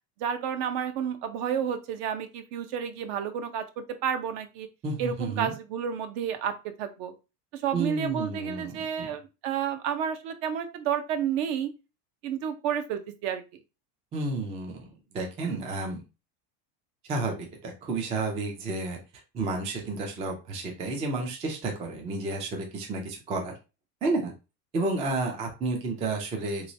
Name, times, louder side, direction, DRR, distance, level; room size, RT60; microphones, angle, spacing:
voice 1, 0.2-4.7 5.0-7.1 7.5-11.7 12.2-13.4, right 8 dB, 60° right, 9 dB, 0.7 m, -31 dB
voice 2, 4.8-5.5 7.7-9.1 14.1-16.0 17.1-19.0 19.3-23.5 24.0-24.3 24.7-26.7, right 3 dB, 15° right, 2 dB, 0.3 m, -31 dB
3.1 x 3.1 x 2.5 m, 0.28 s
supercardioid pair, 135°, 47 cm